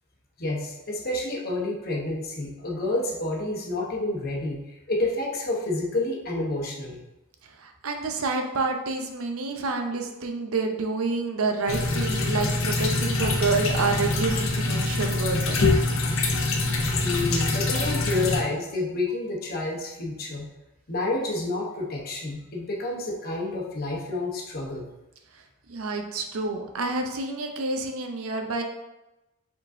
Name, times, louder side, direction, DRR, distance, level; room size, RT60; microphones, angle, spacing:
voice 1, 0.4-4.6 4.9-7.0 17.0-20.5 20.9-24.8, left 2 dB, 45° left, -1 dB, 0.9 m, -29 dB
voice 2, 7.6-15.6 25.7-28.6, right 3 dB, 75° right, 4 dB, 0.6 m, -28 dB
sound 1, 11.7-18.4, left 2 dB, 70° left, 0.7 m, -24 dB
4.9 x 3.8 x 2.6 m, 0.97 s
head